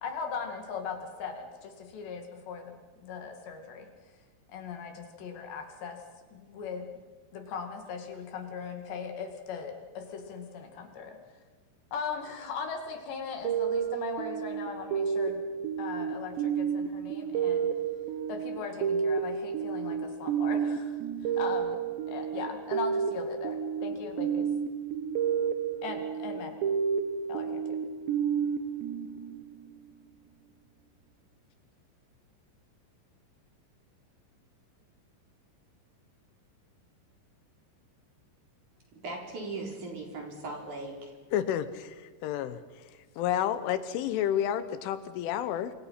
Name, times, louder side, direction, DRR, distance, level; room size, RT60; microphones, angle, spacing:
voice 1, 0.0-3.9 4.5-6.0 6.3-6.9 7.3-11.2 11.9-15.4 15.8-17.7 18.3-24.5 25.8-26.6 27.3-27.6, left 5 dB, 65° left, 5 dB, 4.2 m, -39 dB
sound 1, 13.4-29.8, right 7 dB, 70° right, 3.1 m, -31 dB
voice 2, 38.9-41.1, right 2 dB, 40° right, 1 dB, 5.1 m, -38 dB
voice 3, 41.3-42.6 43.2-45.7, left 10 dB, 80° left, 12 dB, 3.3 m, -30 dB
28.0 x 26.0 x 5.8 m, 1.4 s
omnidirectional pair, 5.7 m